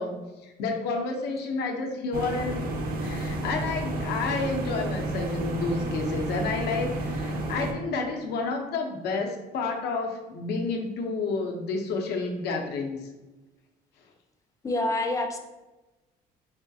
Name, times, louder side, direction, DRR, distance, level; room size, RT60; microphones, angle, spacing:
voice 1, 0.0-2.7 3.0-13.1, left 3 dB, 75° left, 2 dB, 0.7 m, -30 dB
sound 1, 2.1-7.7, right 1 dB, 60° right, 0.6 m, -31 dB
voice 2, 14.6-15.4, left 2 dB, 20° left, 5 dB, 0.4 m, -27 dB
4.2 x 2.3 x 2.6 m, 1.1 s
cardioid pair, 110°, 17 cm